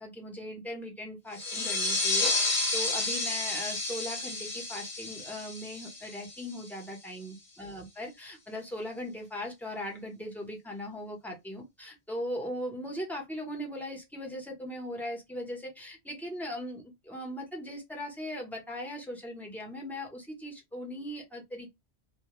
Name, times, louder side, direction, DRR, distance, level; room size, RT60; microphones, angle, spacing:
voice 1, 0.0-21.7, equal, ahead, 0.6 m, -39 dB
sound 1, 1.3-6.7, left 3 dB, 55° left, 0.6 m, -31 dB
2.1 x 2.1 x 2.9 m
omnidirectional pair, 1.1 m